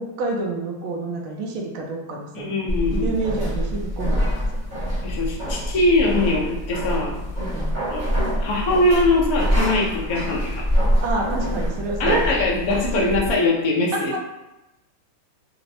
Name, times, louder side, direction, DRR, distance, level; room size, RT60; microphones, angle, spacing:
voice 1, 0.0-2.6 3.0-4.2 7.5-7.7 11.0-12.3 13.9-14.2, right 3 dB, 85° right, 0 dB, 1.4 m, -28 dB
voice 2, 2.3-3.1 5.0-7.1 7.9-8.0 8.4-10.6 12.0-14.1, left 2 dB, 70° left, -2 dB, 0.8 m, -21 dB
sound 1, 2.7-13.3, equal, 30° right, 0.9 m, -25 dB
4.3 x 2.0 x 2.6 m, 0.97 s
omnidirectional pair, 2.2 m